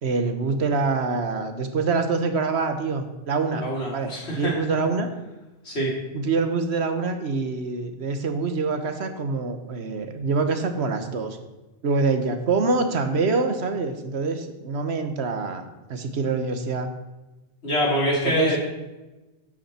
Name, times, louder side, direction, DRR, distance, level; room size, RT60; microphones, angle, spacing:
voice 1, 0.0-3.6 3.9-5.1 6.1-11.4 11.8-16.9 18.2-18.6, right 4 dB, 80° right, 7 dB, 1.3 m, -25 dB
voice 2, 3.5-4.5 5.6-5.9 17.6-18.6, equal, 90° left, -3 dB, 3.3 m, -24 dB
11.5 x 9.0 x 4.3 m, 1.1 s
omnidirectional pair, 1.1 m